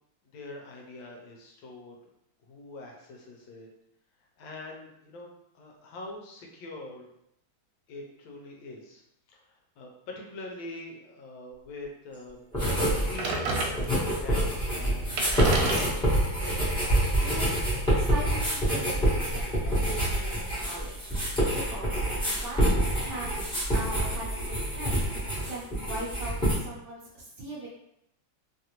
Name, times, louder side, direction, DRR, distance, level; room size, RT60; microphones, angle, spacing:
voice 1, 0.3-2.0 2.4-3.7 4.4-7.1 7.9-9.0 9.3-12.5 12.8-16.4, left 2 dB, 75° left, 0 dB, 1.3 m, -44 dB
sound 1, 12.5-13.2 13.4-26.5, right 1 dB, 5° left, 0.8 m, -27 dB
sound 2, 13.2-14.2 14.8-14.9 15.1-18.1, right 2 dB, 85° right, 1.4 m, -32 dB
voice 2, 17.2-17.6 18.0-21.1 21.5-22.0 22.2-23.4 23.7-27.7, right 1 dB, 65° right, -4 dB, 1.1 m, -40 dB
3.2 x 2.5 x 2.8 m, 0.77 s
omnidirectional pair, 2.2 m